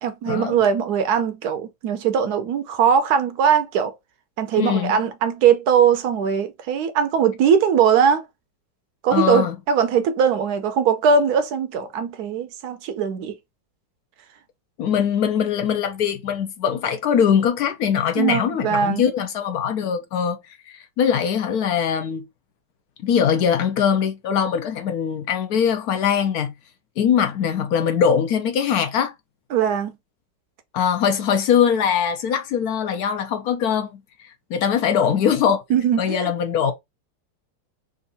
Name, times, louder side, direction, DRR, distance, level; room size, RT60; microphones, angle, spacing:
voice 1, 0.0-3.9 4.4-8.2 9.0-13.4 18.2-19.0 29.5-29.9 35.7-36.3, right 7 dB, 70° right, 1.0 m, -20 dB
voice 2, 4.6-5.0 9.1-9.5 14.8-20.4 20.7-22.3 23.0-26.5 27.0-29.1 30.7-33.9 34.5-35.6 36.0-36.7, left 8 dB, 70° left, 1.0 m, -21 dB
3.6 x 2.6 x 4.0 m
omnidirectional pair, 1.9 m